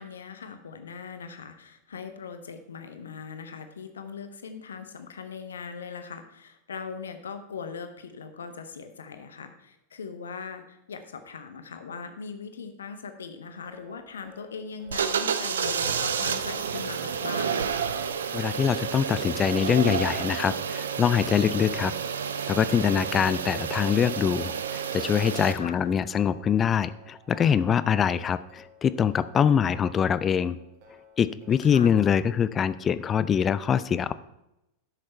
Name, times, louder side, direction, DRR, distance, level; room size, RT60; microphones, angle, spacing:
voice 1, 0.0-17.8 25.5-25.9 31.6-32.1, left 6 dB, 70° left, 9 dB, 0.9 m, -40 dB
sound 1, 13.5-32.8, equal, 45° right, 2.0 m, -53 dB
sound 2, 14.9-25.5, right 7 dB, 65° right, 0.6 m, -30 dB
voice 2, 18.3-21.9 22.5-30.6 31.2-34.1, left 8 dB, 25° left, 15 dB, 0.4 m, -24 dB
11.5 x 6.5 x 4.4 m, 0.87 s
figure-of-eight pair, 90°, 0 cm